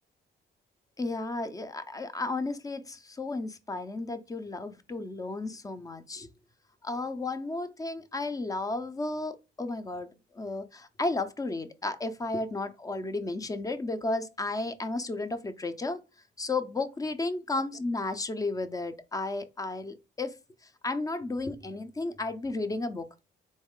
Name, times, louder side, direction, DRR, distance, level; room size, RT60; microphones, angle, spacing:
voice 1, 1.0-6.3 6.8-16.0 16.4-20.3 20.8-23.1, left 2 dB, 20° left, 0.5 m, -33 dB
4.1 x 3.1 x 3.6 m
cardioid pair, 140°, 20 cm